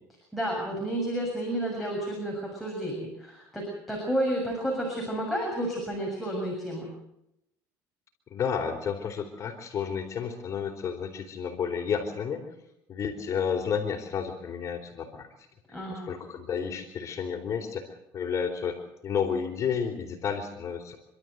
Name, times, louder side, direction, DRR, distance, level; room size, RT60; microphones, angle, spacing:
voice 1, 0.3-6.9 15.7-16.1, right 1 dB, ahead, -2 dB, 7.1 m, -31 dB
voice 2, 8.3-12.4 12.9-15.3 15.9-17.9 18.1-21.0, left 7 dB, 45° left, 4 dB, 4.1 m, -31 dB
27.5 x 13.0 x 8.1 m, 0.81 s
cardioid pair, 110°, 8 cm